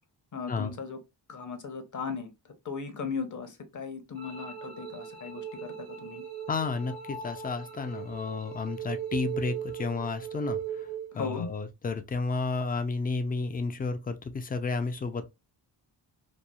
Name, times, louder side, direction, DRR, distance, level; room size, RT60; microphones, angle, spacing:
voice 1, 0.3-1.0 1.3-2.3 2.6-6.2 11.1-11.5, left 5 dB, 45° left, 0.7 m, -37 dB
sound 1, 4.1-11.1, right 8 dB, 90° right, 1.2 m, -38 dB
voice 2, 6.5-10.9 11.1-15.3, left 4 dB, 25° left, 0.3 m, -32 dB
3.0 x 2.3 x 2.2 m
cardioid pair, 95°, 42 cm